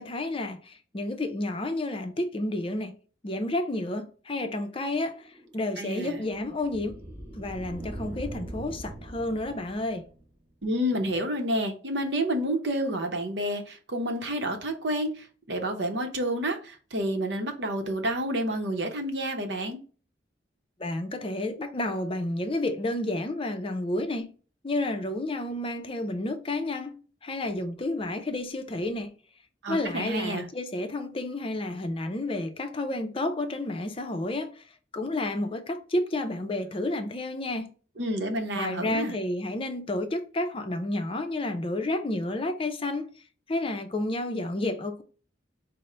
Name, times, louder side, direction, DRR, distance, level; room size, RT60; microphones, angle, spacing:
voice 1, 0.0-3.0 3.2-7.0 7.4-10.1 20.8-24.3 24.6-29.1 29.7-34.6 34.9-37.8 38.5-43.1 43.5-45.0, left 2 dB, 30° left, 0.5 m, -31 dB
sound 1, 4.9-10.5, right 1 dB, 15° right, 0.9 m, -42 dB
voice 2, 5.8-6.2 10.6-19.8 29.6-30.5 38.0-39.1, right 1 dB, 70° right, 0.8 m, -29 dB
5.2 x 2.1 x 4.2 m
head